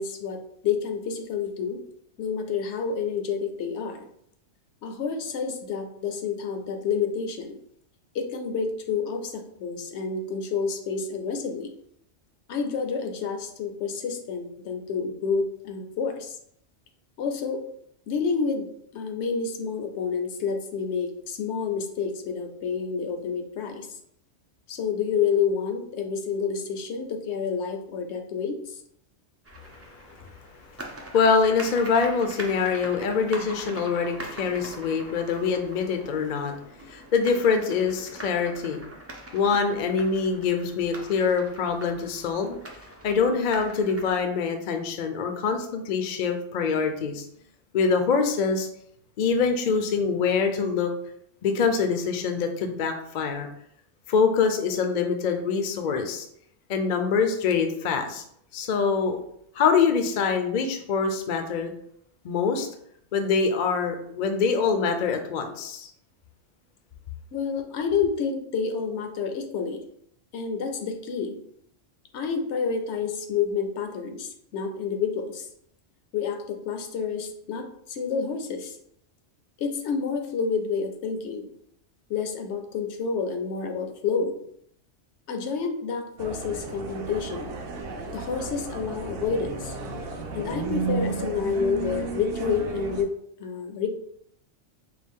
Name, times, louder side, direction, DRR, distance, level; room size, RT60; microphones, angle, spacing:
voice 1, 0.0-1.8 2.2-4.1 4.8-7.6 8.1-11.7 12.5-16.4 17.2-17.6 18.1-18.7 18.9-24.0 24.7-28.8 67.3-69.8 70.3-71.4 72.1-75.5 76.1-78.8 79.6-81.5 82.1-84.4 85.3-87.5 88.1-89.8 90.3-93.1 93.4-93.9, left 6 dB, 75° left, 5 dB, 0.9 m, -29 dB
sound 1, 29.4-44.2, right 1 dB, 25° right, 0.3 m, -42 dB
voice 2, 31.1-36.5 36.9-38.8 39.3-42.5 43.0-47.2 47.7-48.7 49.2-50.9 51.4-53.5 54.1-56.3 56.7-58.2 58.5-59.2 59.5-61.7 62.2-62.7 63.1-65.9, left 5 dB, 55° left, 6 dB, 0.5 m, -24 dB
sound 2, 86.2-93.0, right 4 dB, 60° right, 0.7 m, -33 dB
4.5 x 2.4 x 3.5 m, 0.69 s
omnidirectional pair, 1.2 m